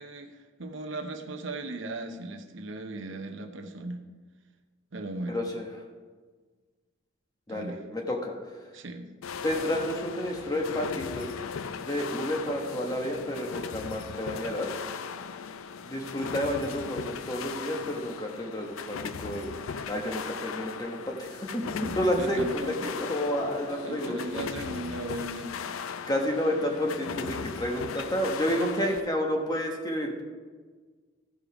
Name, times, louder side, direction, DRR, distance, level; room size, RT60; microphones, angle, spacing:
voice 1, 0.0-4.0 4.9-5.4 7.5-7.8 8.7-9.1 21.8-23.0 23.8-25.6 28.6-28.8, right 2 dB, 65° right, 4 dB, 0.8 m, -37 dB
voice 2, 5.3-5.6 7.5-8.3 9.4-11.3 11.8-14.7 15.8-24.2 26.1-30.2, equal, 20° left, 1 dB, 1.2 m, -30 dB
sound 1, 9.2-29.0, left 6 dB, 90° left, 0.5 m, -38 dB
14.5 x 5.1 x 4.9 m, 1.5 s
head